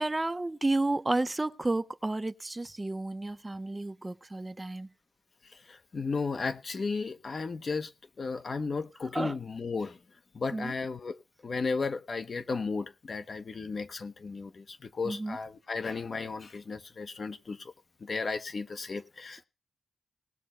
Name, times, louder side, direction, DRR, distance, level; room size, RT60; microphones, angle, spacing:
voice 1, 0.0-4.9 9.1-9.4 10.5-10.7 15.0-15.4, right 2 dB, 25° right, 0.5 m, -31 dB
voice 2, 5.7-7.9 8.2-10.0 10.3-17.7 18.0-19.4, left 4 dB, 60° left, 1.0 m, -34 dB
19.0 x 6.7 x 4.4 m
cardioid pair, 60°, 0 cm